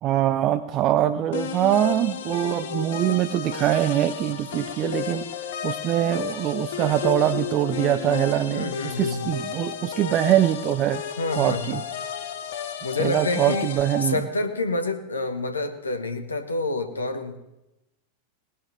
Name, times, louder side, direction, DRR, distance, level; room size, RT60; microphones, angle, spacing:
voice 1, 0.0-5.3 5.6-11.0 11.4-11.8 13.0-14.3, right 12 dB, 35° right, 12 dB, 0.5 m, -23 dB
sound 1, 1.3-14.1, left 8 dB, 60° left, 1.1 m, -33 dB
voice 2, 8.5-9.3 11.2-11.8 12.8-13.7 14.0-17.4, left 3 dB, 80° left, 8 dB, 1.1 m, -28 dB
19.0 x 11.0 x 3.2 m, 0.94 s
figure-of-eight pair, 90°, 0 cm